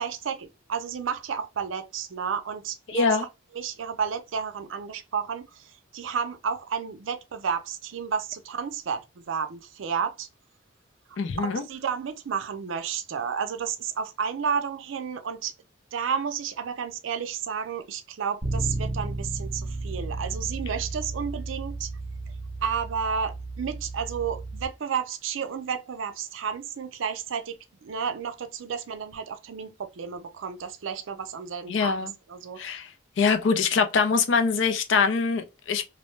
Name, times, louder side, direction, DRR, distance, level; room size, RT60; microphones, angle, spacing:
voice 1, 0.0-3.1 3.5-10.3 11.1-15.5 15.9-21.9 22.6-27.5 27.8-31.9 32.3-32.6, right 6 dB, 80° right, 0.4 m, -31 dB
voice 2, 2.9-3.3 11.2-11.6 31.7-32.1 32.6-32.9 33.2-35.8, left 5 dB, 70° left, 0.4 m, -23 dB
Bass guitar, 18.4-24.7, right 2 dB, 10° right, 0.9 m, -33 dB
2.6 x 2.0 x 3.0 m
head